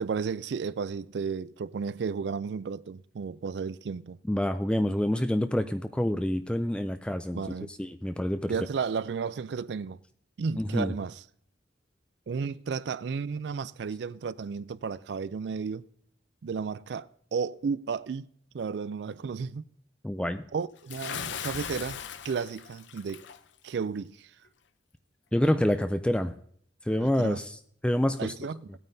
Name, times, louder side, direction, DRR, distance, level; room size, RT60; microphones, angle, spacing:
voice 1, 0.0-4.2 7.3-7.7 8.5-10.0 10.4-11.2 12.3-15.9 16.4-18.3 18.5-19.7 20.5-23.2 23.6-24.3 27.0-27.4 28.2-28.8, right 5 dB, 65° right, 0.4 m, -33 dB
voice 2, 4.3-7.4 7.8-8.5 10.6-10.9 20.0-20.4 25.3-26.3 26.8-28.3, left 1 dB, 5° left, 0.3 m, -27 dB
Bathtub (filling or washing) / Splash splatter, 20.9-23.4, left 8 dB, 80° left, 0.6 m, -38 dB
17.5 x 9.1 x 2.7 m
head